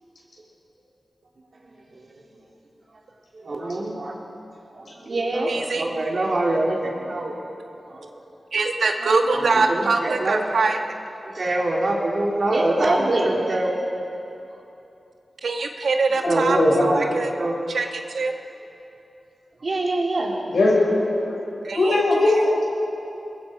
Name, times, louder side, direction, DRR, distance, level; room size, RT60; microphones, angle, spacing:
voice 1, 1.5-2.2 2.9-3.0 3.3-4.2 4.7-7.6 7.9-8.1 9.0-10.7 11.2-14.1 14.5-14.6 16.3-17.6 19.6-20.4, right 2 dB, 55° right, -2 dB, 3.9 m, -25 dB
voice 2, 5.5-5.8 8.5-10.8 15.4-16.6 16.9-17.3 17.7-18.3 21.6-22.0, right 3 dB, 85° right, 3 dB, 1.6 m, -23 dB
voice 3, 16.4-16.9 20.5-21.3 21.7-22.6, left 2 dB, 80° left, -3 dB, 7.0 m, -19 dB
28.5 x 21.5 x 5.4 m, 2.8 s
wide cardioid pair, 115°, 0 cm